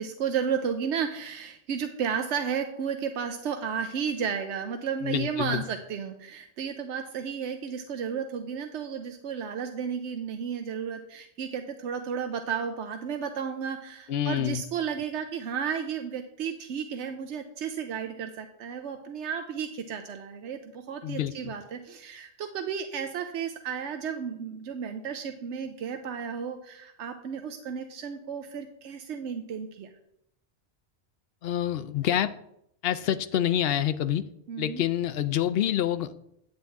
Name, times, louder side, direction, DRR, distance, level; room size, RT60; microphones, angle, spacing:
voice 1, 0.0-29.9 34.5-34.8, right 7 dB, 90° right, 6 dB, 1.0 m, -33 dB
voice 2, 5.0-5.6 14.1-14.6 21.0-21.5 31.4-32.3 32.8-34.2 34.6-36.1, left 11 dB, 65° left, 12 dB, 0.7 m, -27 dB
9.0 x 8.8 x 3.5 m, 0.75 s
omnidirectional pair, 1.2 m